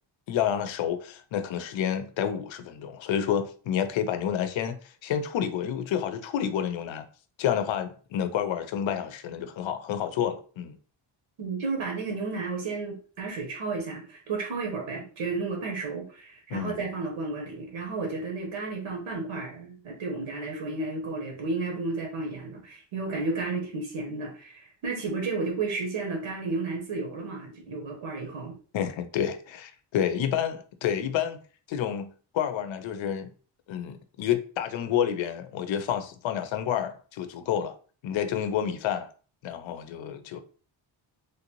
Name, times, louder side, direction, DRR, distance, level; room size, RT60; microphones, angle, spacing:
voice 1, 0.3-7.1 7.4-10.8 16.5-16.8 28.7-31.4 31.7-33.3 33.7-37.8 38.0-39.1 39.4-40.4, left 9 dB, 70° left, 0.6 m, -29 dB
voice 2, 11.4-28.5, right 3 dB, 85° right, 1.1 m, -32 dB
3.2 x 2.6 x 2.9 m
wide cardioid pair, 155°, 48 cm